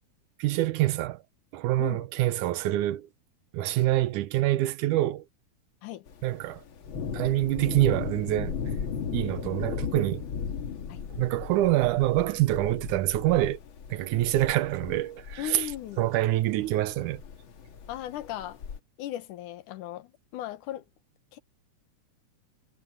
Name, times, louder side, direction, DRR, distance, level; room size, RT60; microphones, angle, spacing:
voice 1, 0.4-1.2 1.5-3.1 3.5-5.3 6.2-6.6 7.1-8.6 9.1-10.2 11.2-13.6 13.9-15.7 16.0-17.2, right 15 dB, 85° right, 2.2 m, -26 dB
Thunder, 6.1-18.8, left 6 dB, 50° left, 1.9 m, -37 dB
voice 2, 15.4-16.0 17.9-18.6 19.0-20.8 21.3-21.4, left 13 dB, 90° left, 2.6 m, -37 dB
omnidirectional pair, 3.5 m